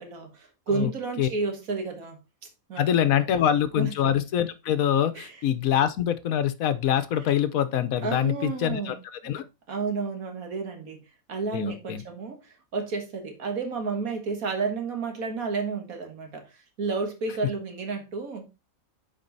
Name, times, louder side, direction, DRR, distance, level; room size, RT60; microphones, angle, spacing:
voice 1, 0.0-2.2 2.7-3.0 3.8-3.9 5.2-5.3 8.0-9.0 9.7-11.0 11.3-18.5, right 4 dB, 75° right, 2.0 m, -31 dB
voice 2, 2.8-9.4 11.5-12.0, left 10 dB, 75° left, 1.2 m, -25 dB
7.4 x 4.7 x 3.9 m
omnidirectional pair, 1.5 m